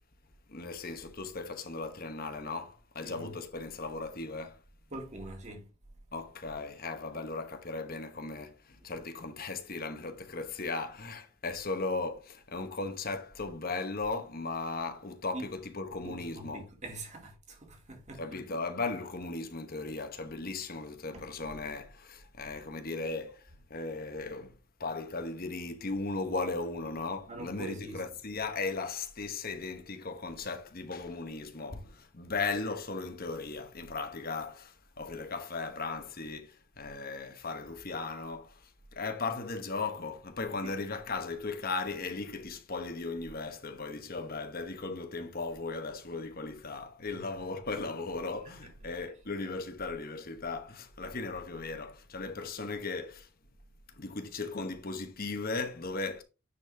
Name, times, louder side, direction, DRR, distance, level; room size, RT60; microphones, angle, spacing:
voice 1, 0.5-4.6 6.1-16.7 18.2-53.3 54.0-56.2, left 3 dB, 40° left, 1.1 m, -37 dB
voice 2, 3.0-3.4 4.9-5.7 15.3-15.4 16.0-18.4 21.1-21.5 27.3-28.1 40.6-40.7 47.0-47.6 48.1-48.2 48.6-48.9, right 1 dB, 30° right, 2.2 m, -44 dB
9.7 x 4.2 x 3.4 m
head